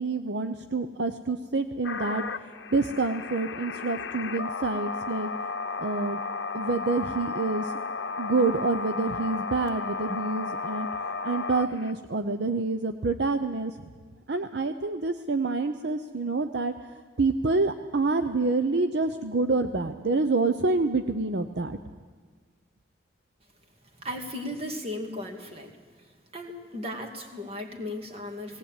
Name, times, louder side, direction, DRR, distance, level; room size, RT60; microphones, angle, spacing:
voice 1, 0.0-5.3 5.8-6.2 6.5-7.7 8.2-10.9 11.2-13.8 14.3-21.8, right 3 dB, 60° right, 9 dB, 0.7 m, -27 dB
sound 1, 1.8-11.9, left 4 dB, 60° left, 0.9 m, -34 dB
voice 2, 24.0-25.7 26.3-28.6, left 1 dB, 30° right, 3 dB, 2.2 m, -36 dB
18.5 x 18.5 x 8.9 m, 1.5 s
head